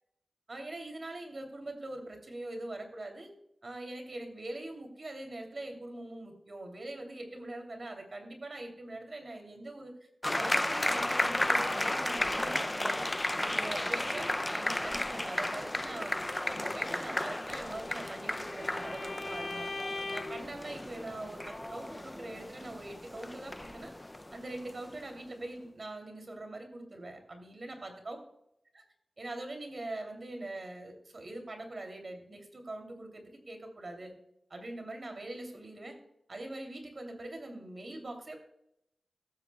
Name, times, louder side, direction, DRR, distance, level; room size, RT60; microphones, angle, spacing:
voice 1, 0.5-3.3 3.6-9.9 10.4-13.1 13.4-16.2 16.5-19.7 20.1-23.9 24.3-28.2 28.7-28.8 29.2-34.1 34.5-36.0 36.3-38.4, right 2 dB, 50° right, 4 dB, 2.7 m, -43 dB
sound 1, 10.2-25.2, left 1 dB, 15° left, 0.4 m, -34 dB
Bowed string instrument, 17.5-20.5, left 3 dB, 40° left, 0.8 m, -41 dB
15.5 x 12.5 x 2.2 m, 0.78 s
wide cardioid pair, 90°, 0 cm